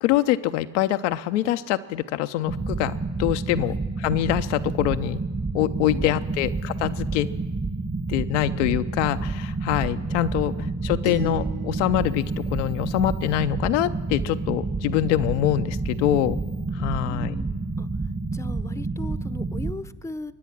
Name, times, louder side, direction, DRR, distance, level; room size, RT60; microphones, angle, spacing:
voice 1, 0.0-2.9 3.2-5.2 5.5-7.3 8.1-10.5 10.8-16.4 16.7-17.4, left 13 dB, 80° left, 9 dB, 0.6 m, -24 dB
sound 1, 2.5-19.8, right 3 dB, 25° right, 1.3 m, -29 dB
voice 2, 5.9-6.4 10.0-10.5 16.8-17.9 18.3-20.3, left 2 dB, 10° left, 14 dB, 0.7 m, -39 dB
sound 2, 11.0-13.5, right 6 dB, 70° right, 4.9 m, -41 dB
22.5 x 9.7 x 5.9 m, 1.2 s
hypercardioid pair, 50°, 36 cm